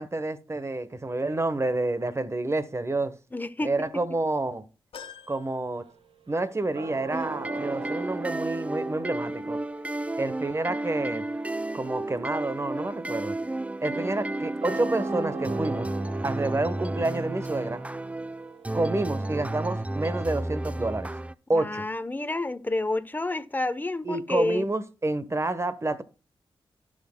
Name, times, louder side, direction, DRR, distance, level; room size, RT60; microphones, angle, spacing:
voice 1, 0.0-3.1 3.6-4.6 5.3-5.8 6.3-9.6 10.2-11.3 11.7-13.4 13.8-15.9 16.2-17.8 18.7-21.1 21.5-21.9 24.0-26.0, right 2 dB, 30° right, 1.1 m, -29 dB
voice 2, 3.3-4.0 21.5-24.7, left 2 dB, 20° left, 0.8 m, -29 dB
sound 1, 4.9-6.6 7.0-7.1 8.3-8.4, left 7 dB, 85° left, 1.5 m, -47 dB
sound 2, 5.8-19.5, right 5 dB, 75° right, 0.9 m, -45 dB
sound 3, 7.1-21.3, right 2 dB, 15° right, 0.4 m, -32 dB
15.5 x 6.4 x 2.2 m
cardioid pair, 60°, 10 cm